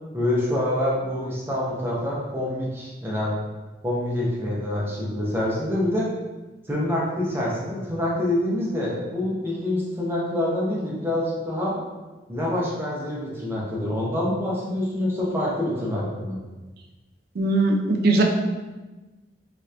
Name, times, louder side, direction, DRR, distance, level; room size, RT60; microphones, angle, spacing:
voice 1, 0.1-3.4 3.8-6.1 6.7-11.8 12.3-16.4, left 1 dB, 15° right, -5 dB, 0.6 m, -26 dB
voice 2, 17.4-18.2, right 2 dB, 60° right, 2 dB, 0.4 m, -20 dB
2.9 x 2.4 x 3.2 m, 1.2 s
head